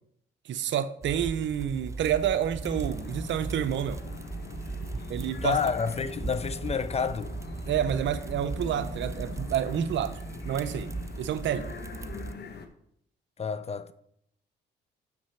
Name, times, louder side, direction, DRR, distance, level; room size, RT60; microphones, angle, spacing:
voice 1, 0.4-4.0 5.1-5.6 7.7-10.2 10.4-11.7, right 9 dB, 70° right, 0.7 m, -29 dB
sound 1, 1.0-12.3, right 3 dB, 15° right, 0.3 m, -38 dB
sound 2, 2.6-12.7, left 4 dB, 55° left, 1.0 m, -42 dB
voice 2, 5.4-7.4 13.4-13.9, left 6 dB, 30° left, 0.5 m, -29 dB
6.1 x 6.0 x 5.7 m
cardioid pair, 75°, 20 cm